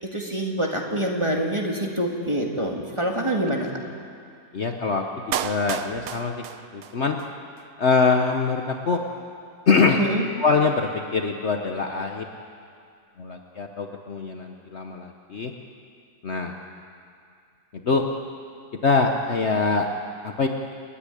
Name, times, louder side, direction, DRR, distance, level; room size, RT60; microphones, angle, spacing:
voice 1, 0.0-3.7 10.0-10.2, right 1 dB, 20° right, 0 dB, 2.1 m, -26 dB
voice 2, 4.5-6.4 6.7-7.2 7.8-9.0 9.7-10.0 10.4-12.2 13.2-15.5 16.2-16.5 17.7-18.0 18.8-19.9 20.2-20.5, left 4 dB, 50° left, 3 dB, 1.1 m, -23 dB
Clapping, 5.3-7.3 7.6-7.7, right 10 dB, 70° right, 1.2 m, -32 dB
28.0 x 10.0 x 10.0 m, 2.3 s
omnidirectional pair, 1.7 m